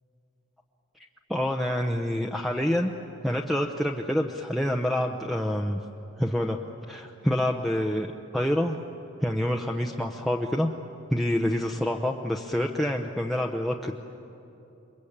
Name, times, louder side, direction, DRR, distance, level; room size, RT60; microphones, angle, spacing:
voice 1, 1.3-2.9 3.2-5.8 6.2-6.6 6.9-8.1 8.3-8.8 9.2-10.7 11.1-13.9, left 1 dB, ahead, 0 dB, 0.8 m, -27 dB
28.5 x 23.0 x 8.8 m, 2.8 s
head